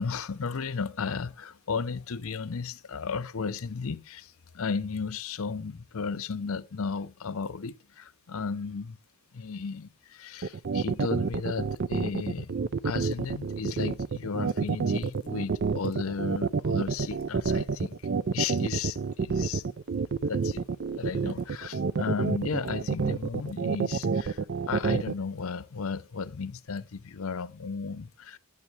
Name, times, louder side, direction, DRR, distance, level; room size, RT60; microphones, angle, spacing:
voice 1, 0.0-9.0 9.3-12.5 12.8-18.0 18.3-19.7 20.2-20.6 21.0-28.4, left 5 dB, 70° left, 0.6 m, -34 dB
sound 1, 10.4-25.1, right 5 dB, 50° right, 0.4 m, -28 dB
10.5 x 8.5 x 3.2 m
head